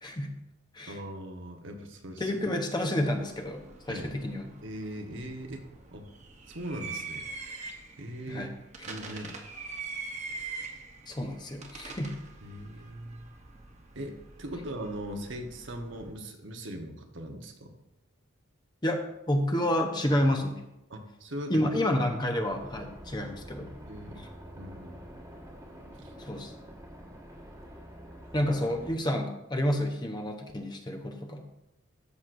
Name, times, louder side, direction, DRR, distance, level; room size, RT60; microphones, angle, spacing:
voice 1, 0.0-0.3 0.7-1.0 2.2-4.5 8.3-8.6 11.1-12.2 18.8-20.6 21.5-23.7 24.2-24.3 26.2-26.5 28.3-31.4, left 1 dB, 20° left, 3 dB, 0.8 m, -29 dB
voice 2, 0.9-2.3 3.9-4.1 4.6-6.1 6.5-7.3 8.0-8.5 8.9-9.3 12.4-13.3 13.9-17.7 20.9-21.8 23.2-23.3 23.8-24.3 24.6-25.0 26.0-26.1, right 1 dB, 60° right, 4 dB, 1.0 m, -40 dB
sound 1, 3.1-16.1, right 4 dB, 35° right, 0.7 m, -44 dB
sound 2, 22.4-29.0, equal, 15° right, 1.4 m, -47 dB
13.5 x 6.3 x 2.6 m, 0.89 s
head